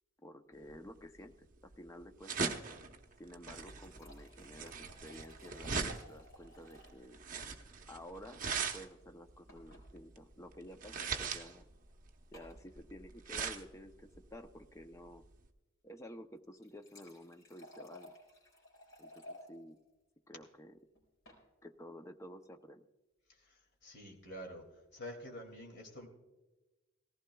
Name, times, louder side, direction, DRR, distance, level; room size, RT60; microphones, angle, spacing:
voice 1, 0.2-2.5 3.2-7.2 7.9-8.4 8.7-11.7 12.3-15.2 15.8-18.1 19.0-19.8 20.3-20.8 21.6-22.8, equal, 15° left, 7 dB, 0.6 m, -52 dB
sound 1, 0.7-15.5, right 5 dB, 40° right, 0.9 m, -41 dB
sound 2, 3.3-7.0 7.3-7.4 7.7-7.8 9.5-9.8 10.8-11.0 12.3-12.6 16.4-19.5 20.9-21.4, left 1 dB, 85° left, 4.4 m, -56 dB
voice 2, 23.4-24.6 24.9-26.1, equal, 55° left, 1 dB, 2.5 m, -48 dB
18.5 x 15.5 x 2.3 m, 1.1 s
head